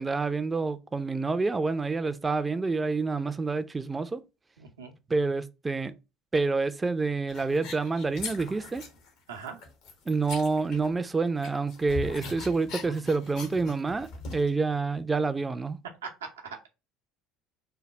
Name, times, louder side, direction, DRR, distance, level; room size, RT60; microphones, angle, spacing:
voice 1, 0.0-4.2 5.1-5.9 6.3-8.8 10.1-15.8, right 3 dB, 20° right, 0.4 m, -28 dB
voice 2, 4.6-4.9 9.3-9.6 16.0-16.7, right 5 dB, 90° right, 0.7 m, -40 dB
sound 1, 7.3-9.1 9.4-11.1 11.4-14.5, left 3 dB, 65° left, 0.9 m, -40 dB
3.3 x 2.2 x 3.8 m
hypercardioid pair, 70°, 0 cm